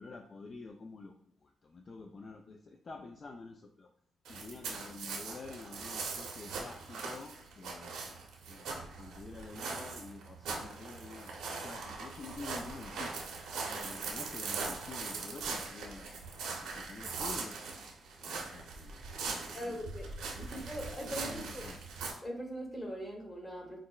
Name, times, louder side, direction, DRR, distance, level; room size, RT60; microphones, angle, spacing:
voice 1, 0.0-3.9 4.3-8.1 8.5-17.6 18.2-19.8 20.4-20.6 21.1-21.8, left 3 dB, 45° left, 4 dB, 0.3 m, -49 dB
sound 1, 4.3-22.1, right 4 dB, 90° right, 0.7 m, -41 dB
voice 2, 19.5-20.1 20.5-21.6 22.2-23.8, equal, 20° left, 1 dB, 1.1 m, -41 dB
5.7 x 2.1 x 2.3 m, 0.62 s
cardioid pair, 80°, 0 cm